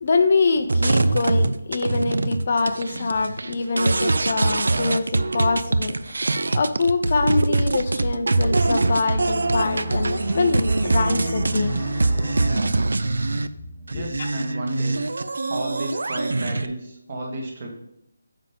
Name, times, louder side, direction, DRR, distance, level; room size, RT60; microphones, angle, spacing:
voice 1, 0.0-6.2 6.5-11.8 13.9-14.3, left 4 dB, 35° left, 7 dB, 0.5 m, -24 dB
sound 1, 0.7-13.5 13.9-16.7, right 2 dB, 70° right, 0.4 m, -23 dB
sound 2, 9.1-14.5 14.8-15.0, right 1 dB, ahead, 1.3 m, -34 dB
voice 2, 13.9-15.0 15.5-17.7, right 1 dB, 30° right, 1 dB, 1.5 m, -31 dB
7.1 x 5.6 x 3.5 m, 0.82 s
figure-of-eight pair, 175°, 0 cm